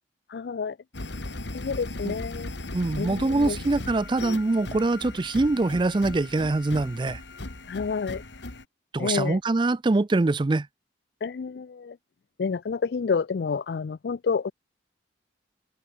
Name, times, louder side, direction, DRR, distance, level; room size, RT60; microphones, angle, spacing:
voice 1, 0.3-0.8 1.5-2.5 3.0-3.6 7.7-8.2 9.0-9.4 11.2-12.0 12.4-14.5, left 5 dB, 65° left, 0.4 m, -29 dB
sound 1, 0.9-8.6, left 2 dB, 85° left, 2.3 m, -37 dB
voice 2, 2.7-7.2 8.9-10.7, right 2 dB, 25° right, 0.4 m, -24 dB
head